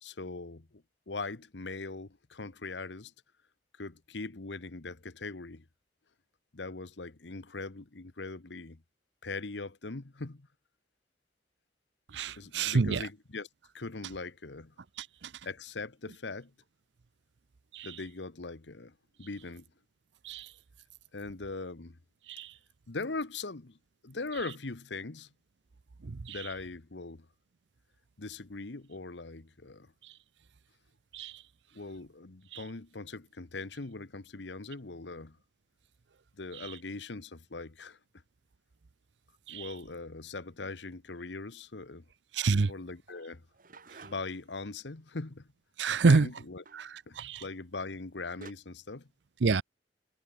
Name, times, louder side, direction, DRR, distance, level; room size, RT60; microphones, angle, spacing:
voice 1, 0.0-3.1 3.8-5.7 6.5-8.8 9.2-10.5 12.4-13.5 13.7-14.7 15.4-16.5 17.8-19.7 21.1-22.0 22.9-23.8 24.0-25.3 26.3-27.3 28.2-29.9 31.7-35.4 36.4-38.0 39.5-42.0 42.7-43.4 44.0-45.5 46.1-46.6 47.1-49.1, left 3 dB, 75° left, 1.2 m, -41 dB
voice 2, 12.1-13.1 15.0-15.3 17.7-17.9 20.2-20.5 22.3-22.5 26.0-26.4 31.1-31.3 39.5-39.7 42.3-42.7 45.8-46.3 46.8-46.9 47.2-47.4 49.4-49.6, right 4 dB, 75° right, 0.6 m, -27 dB
sound 1, 43.1-44.5 46.7-47.0 48.0-48.1 48.4-48.5, right 3 dB, 50° right, 4.0 m, -52 dB
head